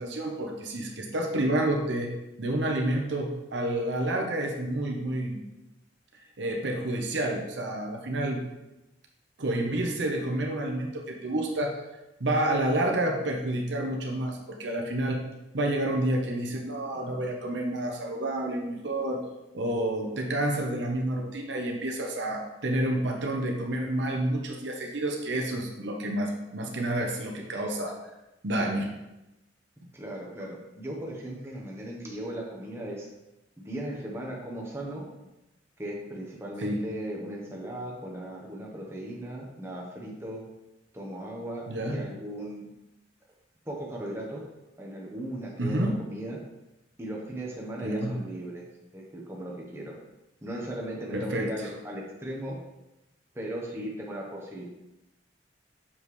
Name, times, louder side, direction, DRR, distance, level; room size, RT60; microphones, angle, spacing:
voice 1, 0.0-2.1 2.4-5.5 6.4-8.4 9.4-11.8 12.2-15.2 15.5-19.2 19.5-28.0 28.4-28.9 36.6-36.8 41.7-42.0 45.6-46.0 47.8-48.1 51.1-51.7, right 1 dB, 70° right, 1 dB, 1.0 m, -29 dB
voice 2, 29.9-33.1 33.6-35.1 35.8-40.4 40.9-42.6 43.7-44.5 44.8-46.4 47.0-48.7 48.9-49.9 50.4-52.6 53.3-54.7, right 1 dB, 15° right, -3 dB, 1.1 m, -37 dB
7.1 x 5.2 x 3.2 m, 0.95 s
head